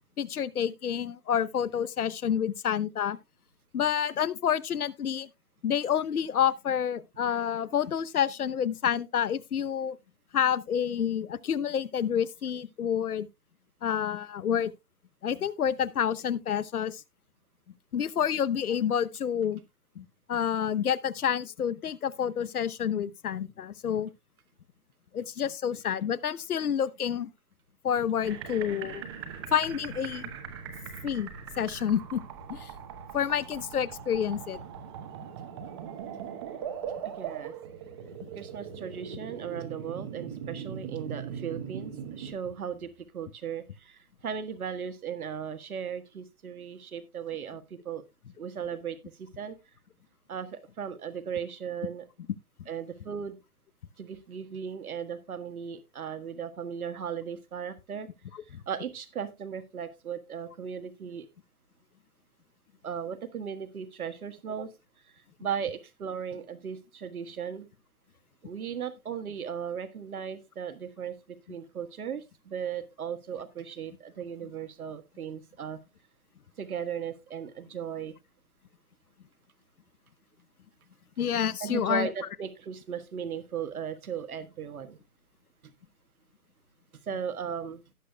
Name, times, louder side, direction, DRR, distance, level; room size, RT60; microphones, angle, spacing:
voice 1, 0.2-3.2 3.7-5.3 5.6-10.0 10.3-13.3 13.8-14.7 15.2-17.0 17.9-19.6 20.0-24.1 25.1-27.3 27.8-29.0 29.5-30.3 31.0-31.3 31.6-32.2 32.5-32.7 33.1-34.6 58.3-58.6 81.2-82.1, left 8 dB, 75° left, 0.9 m, -28 dB
sound 1, 28.2-42.3, right 8 dB, 20° right, 0.9 m, -40 dB
voice 2, 37.2-37.5 38.3-48.0 48.4-49.5 50.3-52.0 52.7-53.4 54.0-58.1 58.7-61.3 62.8-64.7 65.4-67.7 68.4-75.8 76.6-78.1 81.6-85.0 87.1-87.8, right 7 dB, 70° right, 1.6 m, -37 dB
17.5 x 6.6 x 2.2 m
hypercardioid pair, 155°, 45 cm